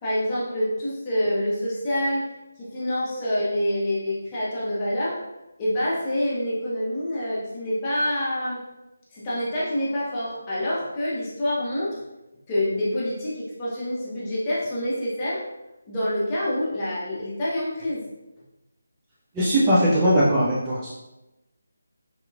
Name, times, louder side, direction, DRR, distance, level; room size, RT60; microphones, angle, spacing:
voice 1, 0.0-2.3 2.6-5.2 5.6-8.6 9.1-12.0 12.5-15.4 15.9-18.0, left 1 dB, 20° left, -8 dB, 0.9 m, -26 dB
voice 2, 19.3-20.9, equal, 15° right, -8 dB, 0.5 m, -20 dB
3.6 x 2.8 x 2.4 m, 0.98 s
figure-of-eight pair, 155°, 0 cm